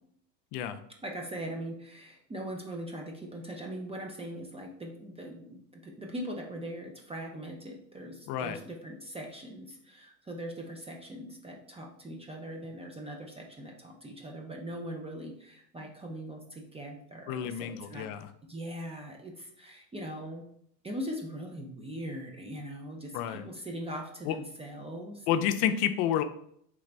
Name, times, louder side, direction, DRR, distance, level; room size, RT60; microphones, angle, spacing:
voice 1, 1.0-18.1 18.5-20.4 20.8-25.5, equal, 15° right, 1 dB, 0.4 m, -41 dB
voice 2, 8.3-8.6 17.3-18.3 23.1-23.4 24.3-24.4 25.3-26.2, left 10 dB, 70° left, 10 dB, 0.6 m, -29 dB
3.8 x 3.4 x 3.3 m, 0.69 s
supercardioid pair, 100°, 49 cm